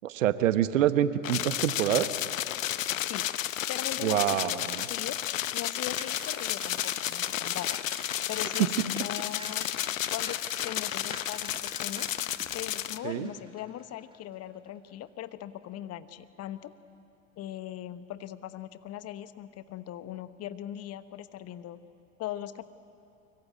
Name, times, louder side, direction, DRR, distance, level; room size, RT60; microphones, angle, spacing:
voice 1, 0.0-2.1 4.0-4.9 13.0-13.3, right 11 dB, 70° right, 13 dB, 1.1 m, -26 dB
sound 1, 1.2-13.0, left 12 dB, 75° left, 0.8 m, -32 dB
voice 2, 3.0-5.2 5.5-7.8 8.3-9.7 10.1-12.2 12.5-16.7 17.4-21.8 22.2-22.6, left 12 dB, 40° left, 13 dB, 1.1 m, -40 dB
sound 2, 6.0-14.7 15.1-15.2, right 3 dB, 15° right, 2.0 m, -48 dB
24.0 x 22.5 x 9.2 m, 2.7 s
figure-of-eight pair, 80°, 40 cm